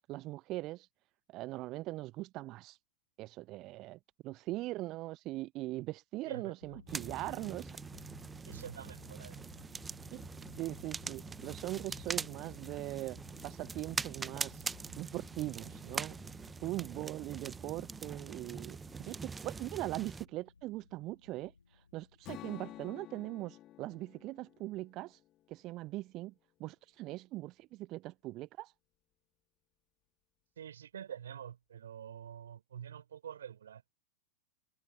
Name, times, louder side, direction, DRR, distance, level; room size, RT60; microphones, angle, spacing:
voice 1, 0.1-0.9 1.3-2.8 3.2-7.7 10.1-10.2 10.6-13.2 13.4-14.6 15.0-16.2 16.6-25.2 25.5-26.3 26.6-28.7, right 18 dB, 40° right, 0.7 m, -41 dB
sound 1, 6.6-22.9, left 4 dB, 75° left, 1.7 m, -58 dB
sound 2, 6.9-20.2, right 4 dB, 15° right, 1.0 m, -43 dB
voice 2, 8.5-9.5 30.6-33.8, right 9 dB, 65° right, 4.7 m, -46 dB
Strum, 22.2-26.4, left 14 dB, 35° left, 4.5 m, -52 dB
figure-of-eight pair, 90°, 0 cm